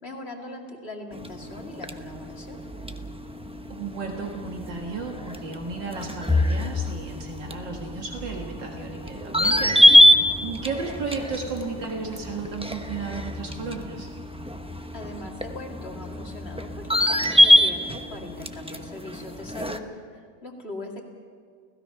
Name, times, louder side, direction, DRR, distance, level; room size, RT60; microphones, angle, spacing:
voice 1, 0.0-2.6 14.9-21.0, left 2 dB, 35° left, 1 dB, 2.6 m, -40 dB
sound 1, 1.1-19.8, left 1 dB, 10° right, 0.3 m, -24 dB
voice 2, 3.7-14.1, right 4 dB, 80° right, 1 dB, 2.4 m, -34 dB
29.5 x 16.5 x 5.7 m, 2.1 s
omnidirectional pair, 1.9 m